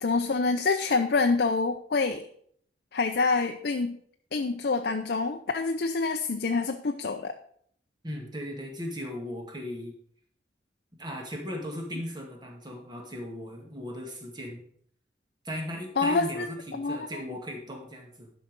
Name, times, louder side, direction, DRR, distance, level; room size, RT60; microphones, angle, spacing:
voice 1, 0.0-2.3 2.9-4.0 4.3-7.3 16.0-16.5 16.7-17.0, left 4 dB, 55° left, 5 dB, 0.6 m, -26 dB
voice 2, 8.0-9.9 11.0-14.6 15.4-18.3, equal, 25° right, 1 dB, 2.0 m, -37 dB
11.0 x 5.8 x 5.3 m, 0.64 s
head